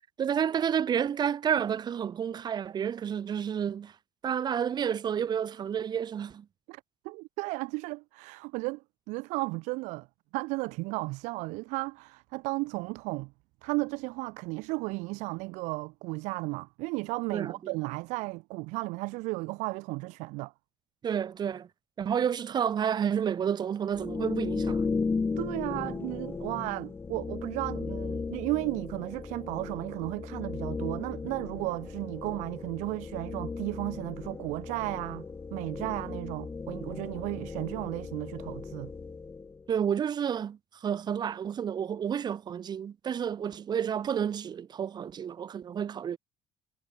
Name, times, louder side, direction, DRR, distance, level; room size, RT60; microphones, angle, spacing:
voice 1, 0.2-3.9 4.2-6.5 17.3-17.7 21.0-21.7 22.0-24.9 39.7-46.2, right 8 dB, 35° right, 1.9 m, -30 dB
voice 2, 6.7-10.1 10.3-13.3 13.6-20.5 25.4-35.2 35.5-38.9, right 25 dB, 90° right, 2.7 m, -34 dB
sound 1, 23.9-39.7, left 4 dB, 20° left, 3.0 m, -36 dB
cardioid pair, 130°, 12 cm